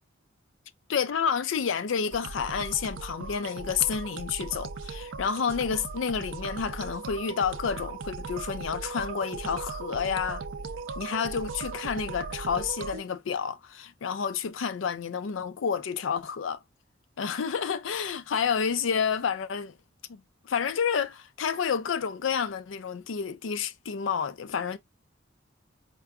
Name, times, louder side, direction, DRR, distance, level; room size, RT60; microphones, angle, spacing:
voice 1, 0.9-10.4 11.0-16.6 17.2-19.7 20.1-24.8, left 6 dB, 80° left, 0.4 m, -30 dB
sound 1, 2.1-13.0, right 4 dB, 85° right, 0.5 m, -38 dB
4.7 x 2.2 x 3.4 m
head